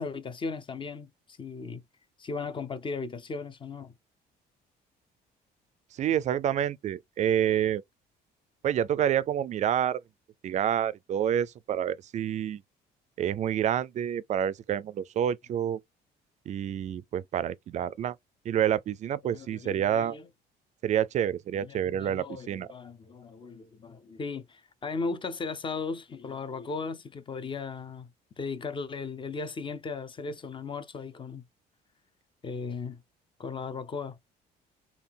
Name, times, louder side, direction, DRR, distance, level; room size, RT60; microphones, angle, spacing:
voice 1, 0.0-1.8 2.2-3.9 19.2-20.3 21.6-28.1 28.4-31.4 32.4-33.0 33.4-34.2, left 4 dB, 30° left, 0.6 m, -37 dB
voice 2, 6.0-7.8 8.6-10.0 10.4-12.6 13.2-15.8 16.5-18.2 18.5-20.2 20.8-22.7, right 10 dB, 45° right, 0.4 m, -28 dB
3.8 x 2.3 x 3.4 m
cardioid pair, 110°, 17 cm